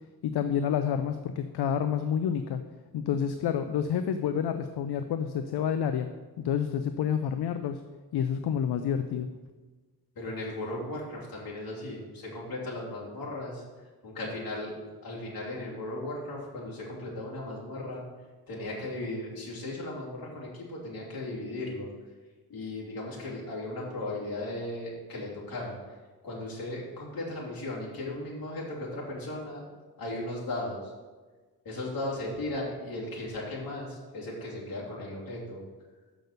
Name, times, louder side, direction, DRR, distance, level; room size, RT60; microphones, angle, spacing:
voice 1, 0.2-2.6 2.9-6.1 6.4-7.8 8.1-9.3, left 8 dB, 80° left, 8 dB, 0.6 m, -29 dB
voice 2, 10.1-14.7 15.0-18.0 18.5-21.9 22.5-25.8 26.2-29.6 30.0-30.9 31.6-35.6, left 1 dB, 65° left, -5 dB, 3.0 m, -36 dB
6.8 x 6.1 x 6.6 m, 1.3 s
wide cardioid pair, 110°, 39 cm